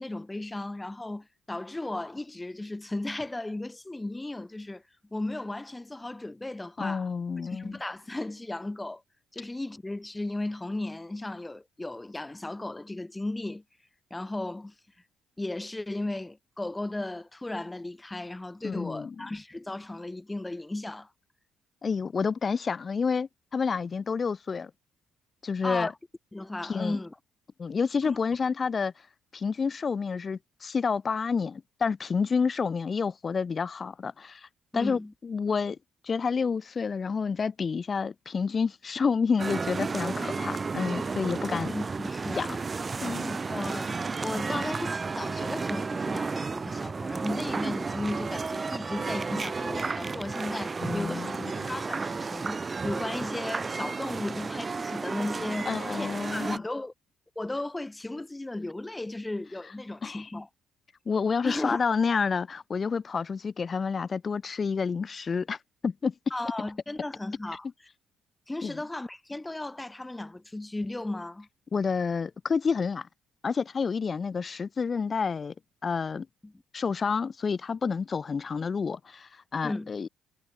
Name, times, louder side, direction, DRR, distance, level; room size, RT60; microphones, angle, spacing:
voice 1, 0.0-4.8 5.1-7.1 7.4-9.0 9.3-13.6 14.1-14.7 15.4-21.1 25.6-25.9 26.3-27.2 28.0-28.2 34.7-35.1 41.5-42.5 43.2-56.9 57.4-60.5 61.4-61.8 66.3-67.7 68.5-71.5 76.4-76.5 79.6-79.9, left 2 dB, 15° left, 2.4 m, -35 dB
voice 2, 6.8-7.8 18.6-19.2 21.8-24.7 25.4-25.9 26.6-27.0 27.6-29.1 29.3-34.5 34.7-35.8 36.0-41.7 42.3-42.6 43.0-43.4 50.8-51.7 55.7-56.6 60.0-60.3 61.1-66.1 68.6-68.8 71.7-73.1 73.4-75.5 75.8-76.3 76.7-80.1, left 5 dB, 40° left, 2.0 m, -29 dB
sound 1, 39.4-56.6, right 4 dB, 35° right, 3.8 m, -32 dB
hypercardioid pair, 55°, 0 cm